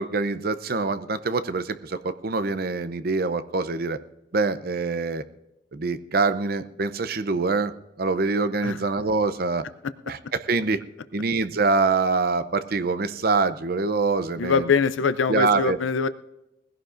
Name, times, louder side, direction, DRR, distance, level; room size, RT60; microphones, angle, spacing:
voice 1, 0.0-4.0 4.3-5.2 5.7-7.7 8.0-9.6 10.1-10.8 11.1-14.8 15.3-15.8, right 3 dB, 50° right, 13 dB, 0.6 m, -25 dB
voice 2, 14.4-16.1, left 5 dB, 90° left, 13 dB, 0.5 m, -23 dB
20.0 x 16.0 x 2.6 m, 0.89 s
head